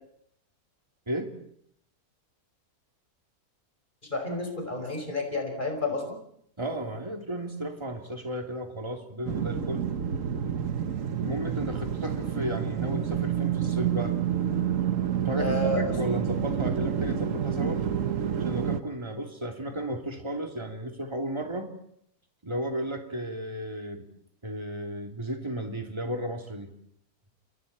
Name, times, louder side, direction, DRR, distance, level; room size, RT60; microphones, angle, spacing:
voice 1, 4.0-6.1 15.4-15.8, left 2 dB, 30° left, 3 dB, 5.6 m, -30 dB
voice 2, 6.6-9.9 11.2-14.2 15.2-17.9 18.4-21.7 22.4-24.1 24.4-26.7, right 1 dB, 20° right, 3 dB, 3.1 m, -34 dB
sound 1, 9.2-18.8, right 8 dB, 60° right, 1.5 m, -28 dB
29.0 x 29.0 x 4.4 m, 0.70 s
omnidirectional pair, 1.6 m